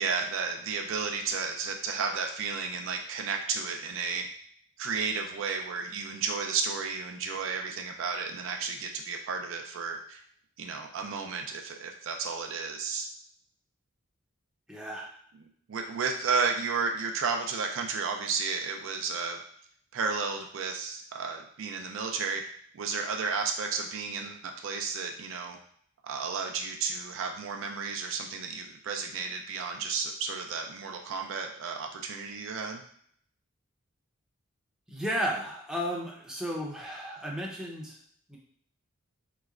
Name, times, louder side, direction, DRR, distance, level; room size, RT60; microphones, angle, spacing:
voice 1, 0.0-4.3 4.8-10.2 10.6-13.1 15.7-19.4 19.9-22.4 22.7-25.6 26.0-32.8, right 5 dB, 65° right, 3 dB, 0.4 m, -32 dB
voice 2, 14.7-15.1 34.9-38.0 38.3-38.4, equal, 5° right, -3 dB, 0.6 m, -33 dB
3.2 x 3.0 x 2.4 m, 0.62 s
head